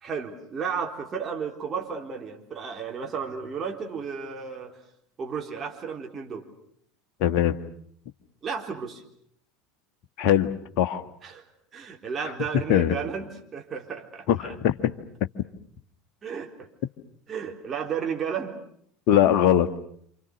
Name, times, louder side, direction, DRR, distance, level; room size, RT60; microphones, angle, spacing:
voice 1, 0.0-4.8 5.2-6.5 8.4-9.0 11.2-11.4 11.7-14.3 16.2-16.7 17.3-18.6, right 6 dB, 30° right, 2 dB, 3.9 m, -33 dB
voice 2, 7.2-7.5 10.2-10.5 10.8-11.0 12.2-12.3 12.7-12.9 14.3-14.7 19.1-19.7, left 10 dB, 55° left, 7 dB, 1.6 m, -20 dB
28.5 x 27.0 x 6.6 m, 0.65 s
figure-of-eight pair, 75°, 0 cm